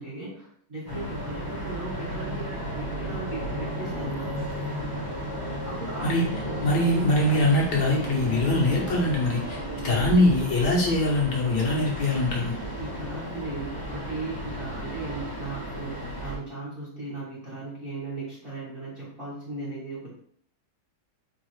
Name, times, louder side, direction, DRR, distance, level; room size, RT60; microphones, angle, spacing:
voice 1, 0.0-4.3 5.6-6.8 12.3-12.5 12.8-20.1, right 2 dB, 35° right, -7 dB, 1.0 m, -37 dB
sound 1, 0.9-16.4, equal, 20° left, 0.7 m, -34 dB
voice 2, 6.6-12.5, left 1 dB, 65° left, -3 dB, 1.3 m, -23 dB
4.5 x 2.4 x 3.1 m, 0.65 s
omnidirectional pair, 2.1 m